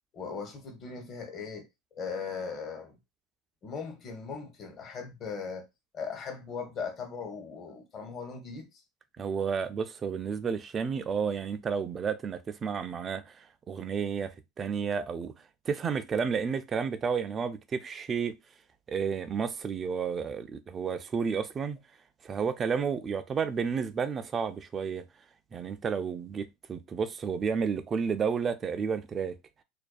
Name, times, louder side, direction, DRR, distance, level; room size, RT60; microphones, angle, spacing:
voice 1, 0.1-1.7 1.9-3.0 3.6-5.7 5.9-8.7, left 5 dB, 40° left, 0.8 m, -38 dB
voice 2, 9.2-15.3 15.7-18.4 18.9-21.8 22.2-25.0 25.5-29.4, right 6 dB, 30° right, 0.4 m, -31 dB
2.5 x 2.2 x 2.3 m
hypercardioid pair, 85°, 0 cm